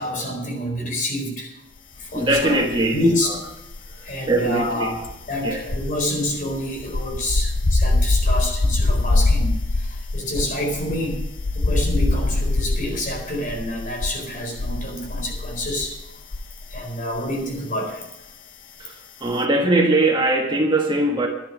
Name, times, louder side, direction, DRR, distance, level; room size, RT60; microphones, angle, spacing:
voice 1, 0.0-1.5 2.0-2.6 2.9-3.3 4.0-11.3 11.5-15.9 16.7-18.0, left 1 dB, 45° left, 1 dB, 4.5 m, -27 dB
voice 2, 2.1-3.3 4.3-5.0 5.4-5.6 18.8-18.9 19.2-21.3, right 2 dB, 25° right, 1 dB, 1.5 m, -21 dB
sound 1, 2.3-3.1 3.4-16.9 17.2-17.4, left 2 dB, 80° left, 0.9 m, -23 dB
11.5 x 10.5 x 6.2 m, 0.92 s
head